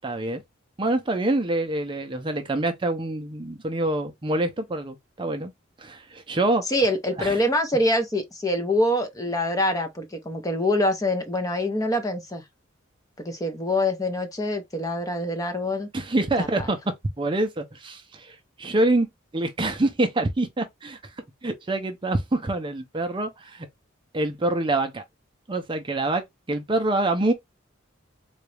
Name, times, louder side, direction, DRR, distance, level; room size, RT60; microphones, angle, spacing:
voice 1, 0.0-0.4 0.8-5.5 5.8-6.6 7.2-7.4 15.9-16.8 17.2-19.1 19.3-21.0 21.4-23.7 24.1-25.0 25.5-27.3, right 2 dB, 25° right, 0.5 m, -26 dB
voice 2, 6.7-12.4 13.2-15.9 16.4-16.7, left 1 dB, 20° left, 0.7 m, -25 dB
3.9 x 2.3 x 3.2 m
head